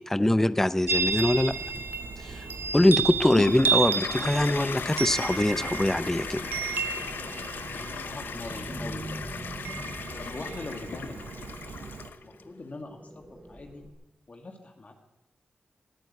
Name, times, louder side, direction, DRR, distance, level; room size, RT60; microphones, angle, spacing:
voice 1, 0.0-1.5 2.2-2.5 2.7-6.5, left 1 dB, 10° left, 15 dB, 0.5 m, -23 dB
Chime, 0.9-12.1, right 6 dB, 75° right, 1.0 m, -32 dB
sound 1, 1.6-13.9, right 1 dB, 15° right, 4.2 m, -46 dB
Toilet flush, 3.2-12.4, left 6 dB, 85° left, 0.8 m, -37 dB
voice 2, 7.5-9.0 10.1-11.9 12.2-13.9 14.3-14.9, left 2 dB, 45° left, 4 dB, 2.1 m, -42 dB
19.0 x 9.1 x 8.1 m, 0.93 s
cardioid pair, 70°, 3 cm